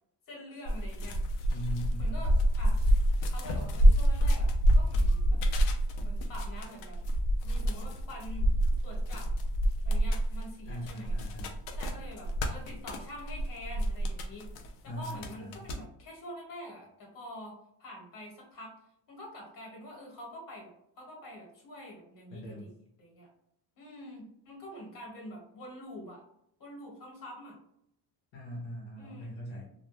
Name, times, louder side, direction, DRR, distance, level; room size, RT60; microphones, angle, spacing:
voice 1, 0.3-1.2 2.0-3.0 3.3-5.4 6.0-7.0 7.4-8.4 8.8-9.3 9.8-11.2 11.7-14.5 14.8-18.7 19.1-23.3 23.8-26.2 26.6-27.6 29.0-29.3, left 1 dB, 45° left, -1 dB, 1.3 m, -46 dB
sound 1, 0.7-14.7 15.0-15.8, equal, 90° left, 0.5 m, -27 dB
voice 2, 1.5-2.2 10.7-11.6 14.8-15.6 22.3-22.7 28.3-29.6, equal, 70° left, -2 dB, 0.9 m, -40 dB
2.3 x 2.1 x 3.1 m, 0.75 s
cardioid pair, 125°, 45 cm